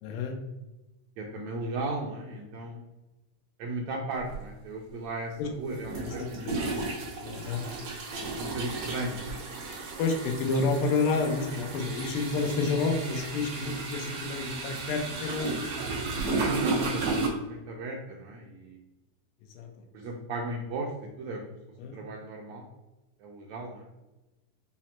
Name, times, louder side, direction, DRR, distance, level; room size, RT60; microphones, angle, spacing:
voice 1, 0.0-0.3 5.4-5.5 6.1-6.6 7.2-7.6 10.0-15.9 19.6-19.7 21.8-22.0, left 4 dB, 85° left, 2 dB, 2.4 m, -29 dB
voice 2, 1.2-2.9 3.6-6.8 8.4-9.7 16.3-18.8 19.9-20.9 21.2-21.4 21.9-22.6 23.2-23.9, right 2 dB, 90° right, -1 dB, 1.5 m, -36 dB
sound 1, 4.3-4.4 5.8-17.3, right 3 dB, 60° right, 2.3 m, -34 dB
6.0 x 2.1 x 4.3 m, 1.0 s
omnidirectional pair, 3.8 m